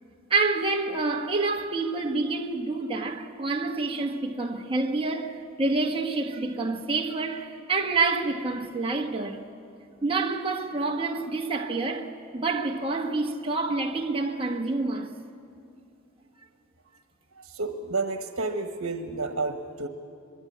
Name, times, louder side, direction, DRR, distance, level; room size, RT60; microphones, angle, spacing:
voice 1, 0.3-9.4 10.0-15.1, right 3 dB, 25° right, 1.4 m, -28 dB
voice 2, 17.3-19.9, right 3 dB, 85° right, 1.3 m, -31 dB
23.0 x 22.5 x 8.6 m
head